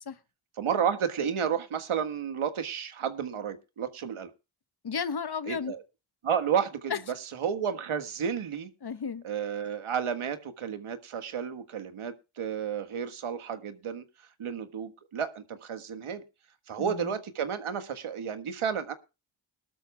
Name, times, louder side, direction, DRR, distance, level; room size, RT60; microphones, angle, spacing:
voice 1, 0.6-4.3 5.5-5.8 6.2-6.9 7.4-8.7 9.2-14.0 14.4-16.2 16.7-18.9, right 7 dB, 80° right, 1.6 m, -31 dB
voice 2, 4.8-5.7 6.9-7.0 8.8-9.2 16.8-17.1, left 6 dB, 50° left, 1.1 m, -33 dB
20.5 x 12.5 x 2.2 m
cardioid pair, 45°, 49 cm